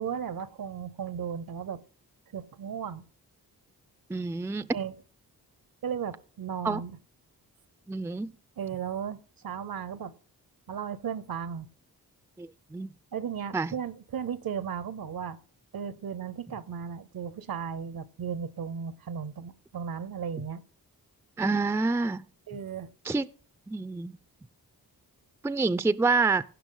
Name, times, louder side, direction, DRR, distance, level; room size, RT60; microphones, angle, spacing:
voice 1, 0.0-1.8 2.3-3.0 4.7-4.9 5.8-7.0 8.6-10.1 10.7-11.7 13.1-15.4 15.7-20.6 22.5-22.9, right 7 dB, 70° right, 0.8 m, -35 dB
voice 2, 4.1-4.7 6.6-6.8 7.9-8.3 12.4-12.9 13.5-13.7 21.4-22.2 23.0-23.3 23.7-24.1 25.4-26.4, right 3 dB, 5° right, 0.4 m, -27 dB
16.5 x 5.8 x 3.9 m
cardioid pair, 55°, 37 cm